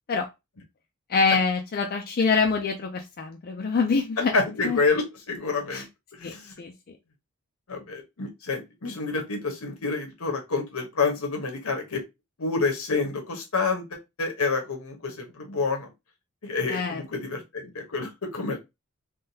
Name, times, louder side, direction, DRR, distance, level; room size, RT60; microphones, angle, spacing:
voice 1, 1.1-4.4 4.6-4.8 5.7-5.8 6.2-7.0 16.7-17.0, left 4 dB, 45° left, 3 dB, 0.4 m, -25 dB
voice 2, 4.3-5.9 6.1-6.5 7.7-12.0 12.4-15.9 16.4-18.6, left 4 dB, 75° left, 3 dB, 1.0 m, -28 dB
3.6 x 2.2 x 2.7 m, 0.22 s
head